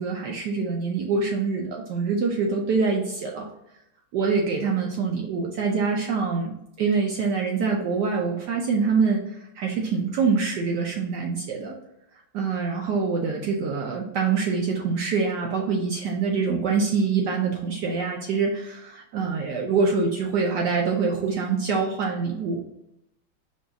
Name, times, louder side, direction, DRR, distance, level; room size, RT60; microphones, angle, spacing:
voice 1, 0.0-3.5 4.1-11.7 12.3-22.6, right 5 dB, 75° right, 0 dB, 1.0 m, -25 dB
5.1 x 2.3 x 3.8 m, 0.81 s
omnidirectional pair, 2.3 m